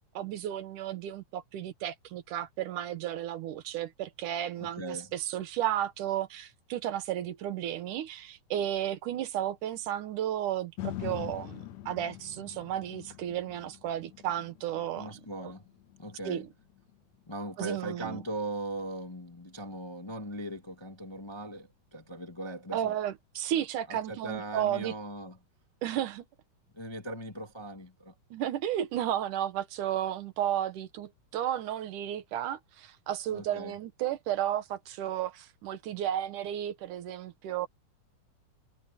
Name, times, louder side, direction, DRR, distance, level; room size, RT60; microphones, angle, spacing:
voice 1, 0.1-15.1 16.3-16.5 17.6-18.2 22.7-24.9 25.8-26.2 28.3-37.7, right 11 dB, 75° right, 2.7 m, -33 dB
voice 2, 4.6-5.1 15.0-15.7 16.0-16.5 17.3-22.9 23.9-25.4 26.7-28.1 33.3-33.7, right 1 dB, 15° left, 1.0 m, -39 dB
sound 1, 10.8-18.9 19.4-19.5, left 13 dB, 65° left, 2.0 m, -45 dB
omnidirectional pair, 3.7 m